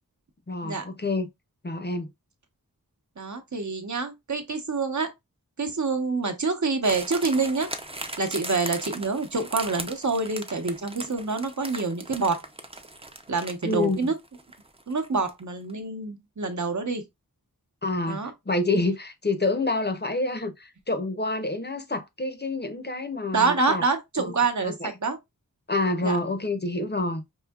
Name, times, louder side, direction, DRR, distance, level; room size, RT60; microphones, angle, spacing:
voice 1, 0.5-1.3 1.6-2.1 13.6-14.1 17.8-18.2 18.5-23.8 24.2-24.3 24.6-24.9 25.7-27.2, left 2 dB, 30° left, 0.6 m, -27 dB
voice 2, 3.2-5.1 5.6-7.7 8.2-12.4 13.3-14.2 14.9-17.0 18.1-18.3 23.3-25.2 26.0-26.2, right 4 dB, 55° right, 0.9 m, -27 dB
sound 1, 6.8-15.4 15.7-15.8, right 2 dB, 15° right, 0.5 m, -38 dB
4.8 x 2.7 x 2.3 m
wide cardioid pair, 55°, 35 cm